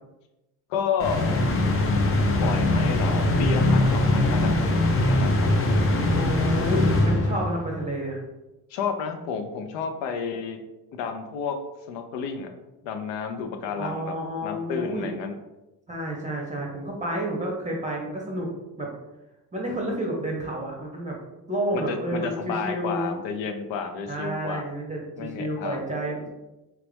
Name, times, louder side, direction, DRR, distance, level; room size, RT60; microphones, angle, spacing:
voice 1, 0.7-1.4 2.3-4.7 5.0-5.9 8.7-10.6 10.9-11.6 11.9-12.5 12.8-14.1 14.4-15.3 21.7-24.6 25.2-25.8, left 6 dB, 65° left, 6 dB, 0.7 m, -31 dB
sound 1, 1.0-7.7, left 2 dB, 30° left, 0.6 m, -22 dB
voice 2, 6.1-8.2 13.8-15.1 15.9-18.5 18.8-18.9 19.5-21.2 21.5-23.1 24.1-26.3, right 1 dB, 15° right, -2 dB, 0.7 m, -30 dB
3.1 x 2.4 x 3.3 m, 0.99 s
hypercardioid pair, 70°, 48 cm